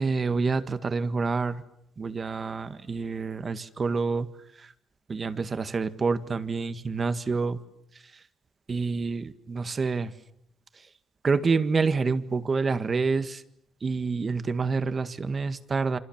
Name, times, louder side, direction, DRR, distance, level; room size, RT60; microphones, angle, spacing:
voice 1, 0.0-1.6 2.0-4.3 4.5-4.7 5.1-7.6 7.9-8.2 8.7-10.1 10.7-10.9 11.2-13.4 13.8-16.0, right 4 dB, 35° right, 11 dB, 1.8 m, -28 dB
28.0 x 26.0 x 7.4 m, 0.74 s
cardioid pair, 90°, 0 cm